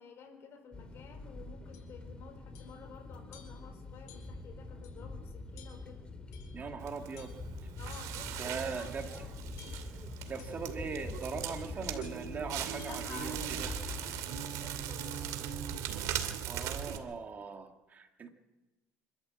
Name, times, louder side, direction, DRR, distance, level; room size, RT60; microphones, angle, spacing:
voice 1, 0.0-6.1 7.7-9.4 12.8-15.4, left 5 dB, 45° left, 5 dB, 4.9 m, -52 dB
sound 1, 0.7-14.4, left 3 dB, 15° left, 2.5 m, -45 dB
sound 2, 1.7-1.9 2.5-2.8 3.3-3.7 4.1-4.4 4.8-5.0 5.6-5.9 6.3-6.7 7.2-7.5 7.9-8.3 8.8-9.0 9.6-10.0 10.4-10.6 11.2-11.5 12.0-12.3 12.8-13.0, left 9 dB, 80° left, 5.4 m, -57 dB
voice 2, 6.5-7.3 8.4-9.1 10.2-13.7 16.4-18.3, right 5 dB, 30° right, 5 dB, 2.1 m, -40 dB
Crackle, 6.8-17.0, right 10 dB, 75° right, 2.4 m, -39 dB
26.0 x 13.0 x 7.8 m, 1.2 s
cardioid pair, 135°, 6 cm